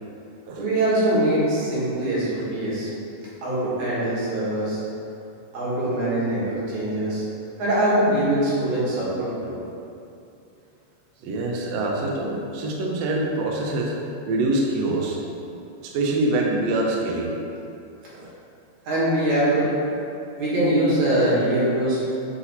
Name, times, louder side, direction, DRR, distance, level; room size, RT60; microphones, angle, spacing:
voice 1, 0.6-2.9 3.4-4.8 5.5-7.2 7.6-9.5 18.9-19.8 20.4-22.1, right 1 dB, 60° right, -9 dB, 2.7 m, -22 dB
voice 2, 11.2-14.0 14.2-15.3 15.8-17.3 18.1-18.3, right 2 dB, 80° right, -1 dB, 1.4 m, -25 dB
8.3 x 2.9 x 4.0 m, 2.7 s
omnidirectional pair, 3.7 m